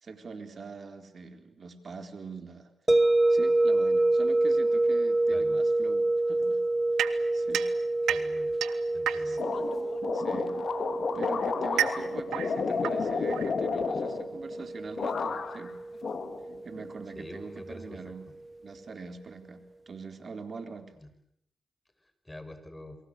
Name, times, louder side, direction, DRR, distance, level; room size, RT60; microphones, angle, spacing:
voice 1, 0.0-2.7 3.3-6.6 7.3-7.7 9.2-9.4 10.1-10.5 11.1-15.8 16.6-18.3 18.6-20.9, right 4 dB, 55° right, 8 dB, 4.0 m, -43 dB
sound 1, 2.9-17.8, right 2 dB, 20° right, 1.6 m, -28 dB
voice 2, 5.3-5.6 8.1-8.6 8.9-9.4 17.1-18.1 21.0-21.1 22.2-23.0, left 1 dB, 15° left, 10 dB, 6.1 m, -45 dB
sound 2, 7.0-9.6 10.6-14.0, right 11 dB, 85° right, 1.2 m, -33 dB
sound 3, 9.4-14.6 15.0-15.7 16.0-16.9, left 5 dB, 65° left, 3.1 m, -32 dB
29.0 x 23.5 x 8.3 m, 0.71 s
supercardioid pair, 40°, 0 cm